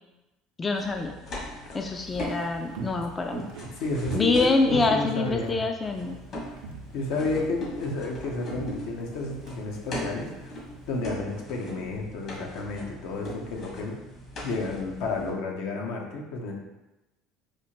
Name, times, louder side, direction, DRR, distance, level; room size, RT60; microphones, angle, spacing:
voice 1, 0.6-1.1 1.7-3.4 4.1-6.2, left 3 dB, 25° left, 4 dB, 0.3 m, -25 dB
sound 1, 0.7-4.8 5.8-15.3, left 1 dB, 55° left, 1.4 m, -39 dB
Walk footsteps, 2.0-6.3 6.6-7.0 7.2-9.6 9.8-9.9, right 4 dB, 85° right, 0.5 m, -40 dB
voice 2, 3.8-5.7 6.9-10.5 10.9-14.0 14.4-16.5, left 3 dB, 75° left, 1 dB, 0.7 m, -31 dB
4.3 x 2.4 x 2.9 m, 1.0 s
supercardioid pair, 100°, 0 cm